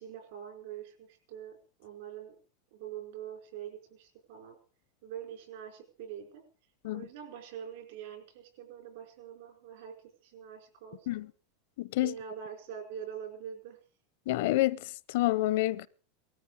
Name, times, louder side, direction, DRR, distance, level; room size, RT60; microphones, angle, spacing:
voice 1, 0.0-2.4 2.7-4.6 5.0-6.4 6.9-10.0 10.2-11.2 12.0-13.8, right 9 dB, 70° right, 4.9 m, -44 dB
voice 2, 11.8-12.1 14.3-15.9, left 17 dB, 65° left, 0.6 m, -28 dB
18.5 x 13.5 x 4.9 m
supercardioid pair, 155°, 0 cm